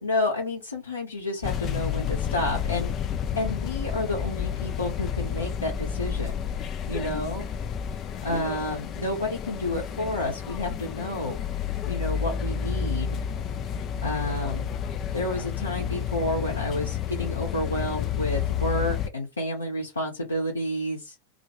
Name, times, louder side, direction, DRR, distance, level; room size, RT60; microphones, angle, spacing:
voice 1, 0.0-2.9 3.4-6.3 6.9-7.5 8.2-11.4 11.9-13.2 14.0-14.6 15.1-21.1, left 1 dB, 80° left, 0.8 m, -30 dB
sound 1, 1.4-19.1, left 8 dB, 30° left, 0.3 m, -30 dB
2.3 x 2.2 x 2.9 m
figure-of-eight pair, 90°, 0 cm